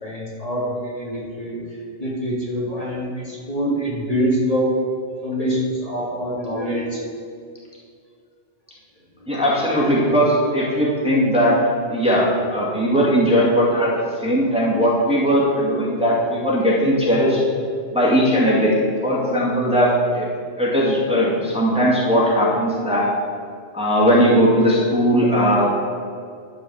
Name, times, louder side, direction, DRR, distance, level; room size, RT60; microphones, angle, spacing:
voice 1, 0.0-1.6 2.0-4.7 5.2-7.0 9.7-9.8 15.8-16.0, equal, 35° left, -6 dB, 2.4 m, -25 dB
voice 2, 9.3-11.6 11.9-13.9 14.2-17.4 17.9-20.3 20.6-23.1 23.7-25.7, equal, 5° right, -7 dB, 2.2 m, -18 dB
11.5 x 4.8 x 7.0 m, 2.2 s
omnidirectional pair, 1.1 m